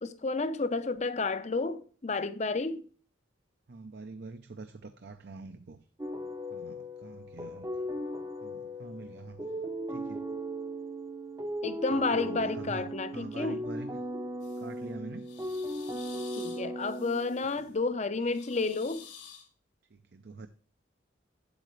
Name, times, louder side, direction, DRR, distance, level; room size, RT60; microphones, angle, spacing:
voice 1, 0.0-2.8 11.6-13.7 16.4-19.1, left 3 dB, 35° left, 0.6 m, -31 dB
voice 2, 3.7-5.8 6.5-8.0 8.4-9.4 9.9-10.3 11.9-12.8 13.1-14.0 14.6-15.3 19.9-20.5, right 3 dB, 55° right, 0.5 m, -45 dB
sound 1, 6.0-17.7, equal, 15° right, 0.7 m, -37 dB
sound 2, 14.4-14.8 15.2-17.7 18.2-19.5, left 8 dB, 75° left, 1.9 m, -51 dB
8.7 x 7.8 x 3.1 m
head